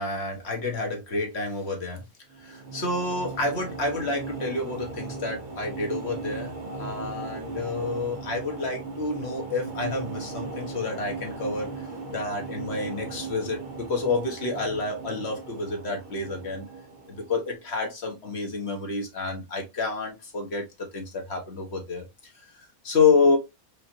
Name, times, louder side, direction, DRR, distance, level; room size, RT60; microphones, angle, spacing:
voice 1, 0.0-2.0 2.4-11.7 12.1-16.7 17.1-20.6 20.9-22.0 22.8-23.4, left 3 dB, 45° left, 1.4 m, -28 dB
sound 1, 2.3-17.6, right 3 dB, 45° right, 0.6 m, -37 dB
4.9 x 2.7 x 2.8 m
omnidirectional pair, 1.6 m